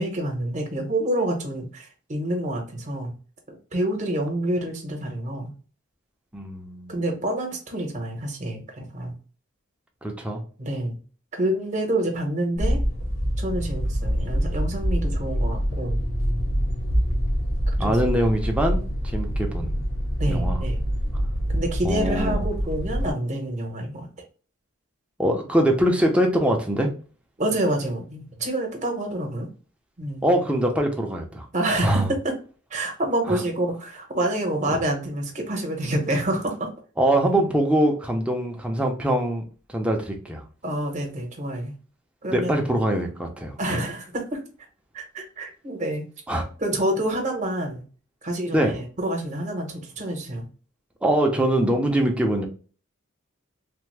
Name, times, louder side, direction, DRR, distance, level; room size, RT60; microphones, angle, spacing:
voice 1, 0.0-3.1 3.5-5.5 6.9-9.1 10.6-11.0 11.3-12.8 13.4-16.0 17.8-17.9 20.2-20.8 21.5-24.1 27.4-29.5 30.0-30.3 31.5-32.3 32.7-36.7 40.6-41.7 42.2-42.6 43.6-44.4 44.9-46.1 46.6-47.8 48.2-50.5, right 1 dB, 35° right, 0.8 m, -27 dB
voice 2, 6.3-6.9 10.0-10.4 17.8-19.7 20.3-20.6 21.8-22.4 25.2-26.9 30.2-31.5 31.8-32.1 33.3-33.4 37.0-39.4 39.7-40.4 42.3-43.5 46.3-46.5 48.5-48.7 51.0-52.5, right 1 dB, 5° right, 0.5 m, -23 dB
sound 1, 12.6-23.1, equal, 85° left, 1.0 m, -25 dB
3.3 x 2.0 x 3.2 m
head